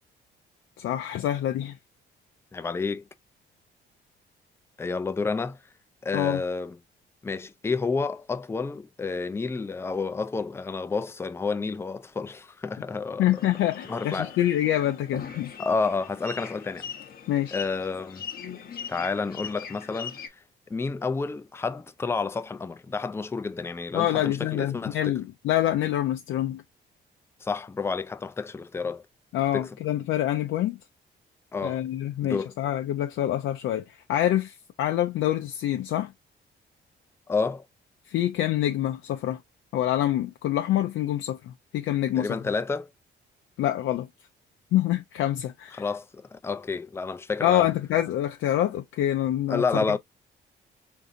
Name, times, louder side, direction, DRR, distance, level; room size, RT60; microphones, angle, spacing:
voice 1, 0.8-1.8 6.1-6.4 13.2-15.5 17.3-17.6 23.9-26.6 29.3-30.8 31.6-36.1 38.1-39.4 39.7-42.4 43.6-44.1 44.7-45.9 47.4-49.8, left 12 dB, 75° left, 0.4 m, -26 dB
voice 2, 2.5-3.0 4.8-5.6 6.0-6.8 7.2-13.3 13.9-14.3 15.6-16.9 17.5-18.3 18.9-20.1 20.7-25.1 27.4-29.0 29.5-29.7 31.5-31.8 32.2-32.5 37.3-37.7 42.2-42.9 45.8-47.7 49.5-50.0, left 4 dB, 15° left, 0.3 m, -30 dB
sound 1, 13.3-20.3, left 6 dB, 50° left, 0.7 m, -41 dB
3.7 x 2.6 x 2.4 m
cardioid pair, 90°, 20 cm